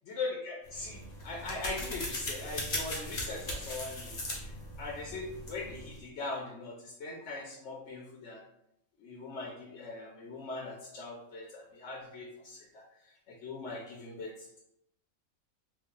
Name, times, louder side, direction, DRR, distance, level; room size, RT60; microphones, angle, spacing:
voice 1, 0.1-4.5 4.8-8.4 9.0-12.8 13.4-14.3, left 3 dB, 65° left, -2 dB, 0.9 m, -40 dB
sound 1, 0.7-6.0, left 1 dB, 40° left, 0.8 m, -39 dB
3.2 x 2.4 x 3.7 m, 0.78 s
omnidirectional pair, 1.4 m